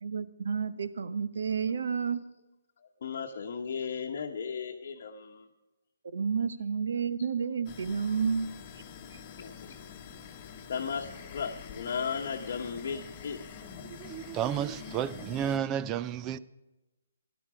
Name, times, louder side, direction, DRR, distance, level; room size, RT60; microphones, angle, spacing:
voice 1, 0.0-2.2 6.1-8.5, right 6 dB, 70° right, 0.9 m, -30 dB
voice 2, 2.8-5.5 9.4-9.7 10.7-13.4, left 6 dB, 50° left, 1.0 m, -36 dB
sound 1, 7.6-15.6, left 6 dB, 20° left, 1.2 m, -46 dB
voice 3, 13.9-16.4, right 9 dB, 15° right, 0.4 m, -32 dB
13.5 x 11.0 x 4.9 m
hypercardioid pair, 160°, 0 cm